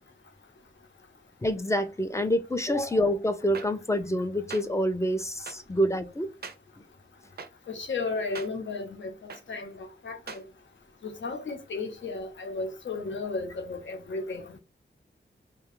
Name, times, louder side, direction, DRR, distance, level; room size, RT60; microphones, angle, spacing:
voice 1, 1.4-6.3, equal, 15° left, 0.3 m, -27 dB
sound 1, 3.5-3.7 4.5-4.6 5.5-5.6 6.4-6.6 7.4-7.5 8.3-8.5 9.3-9.4 10.3-10.4, right 5 dB, 55° right, 0.4 m, -39 dB
voice 2, 7.7-9.1 9.5-10.4 11.0-14.6, left 3 dB, 75° left, 0.8 m, -34 dB
2.3 x 2.1 x 2.9 m
wide cardioid pair, 125°, 20 cm